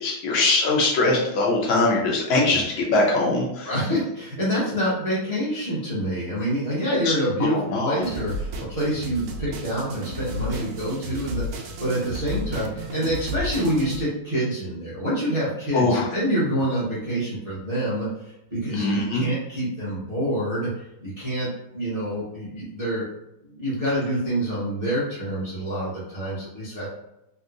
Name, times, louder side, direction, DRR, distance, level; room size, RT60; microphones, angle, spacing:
voice 1, 0.0-3.7 7.1-7.2 7.7-8.0 15.7-16.1 18.7-19.2, left 2 dB, 80° left, -2 dB, 1.5 m, -21 dB
voice 2, 3.6-23.1 23.4-26.9, equal, 35° right, -10 dB, 0.6 m, -27 dB
sound 1, 8.0-14.0, equal, 85° right, 0.8 m, -33 dB
3.4 x 2.7 x 2.4 m, 0.89 s
omnidirectional pair, 2.2 m